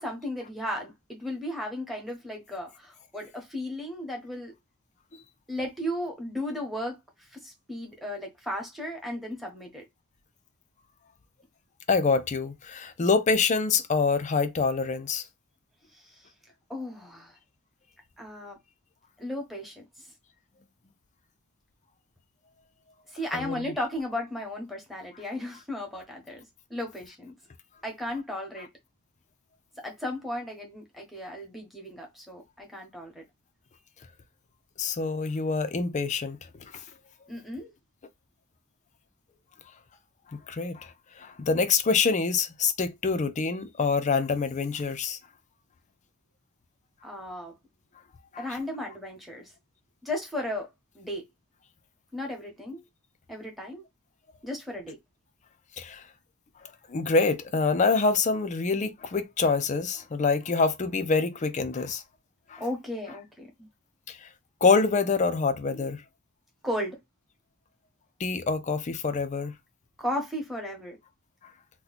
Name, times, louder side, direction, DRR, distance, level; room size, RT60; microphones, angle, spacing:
voice 1, 0.0-4.5 5.5-7.0 7.3-9.8 15.9-16.1 16.7-17.4 18.2-18.6 19.2-19.8 23.1-26.4 26.7-27.3 27.8-28.7 29.8-33.2 37.3-37.7 47.0-47.5 48.4-49.5 50.0-50.7 50.9-51.2 52.1-52.8 53.3-53.8 54.4-55.0 62.6-63.7 66.6-67.0 70.0-71.0, left 1 dB, ahead, 0.9 m, -35 dB
voice 2, 11.9-15.2 23.3-23.8 34.8-36.4 40.3-40.9 41.2-45.2 48.3-48.6 55.8-56.0 56.9-62.0 62.5-62.6 63.1-63.2 64.1-64.3 64.6-66.0 68.2-69.5, left 4 dB, 35° left, 0.4 m, -26 dB
2.9 x 2.2 x 4.0 m
head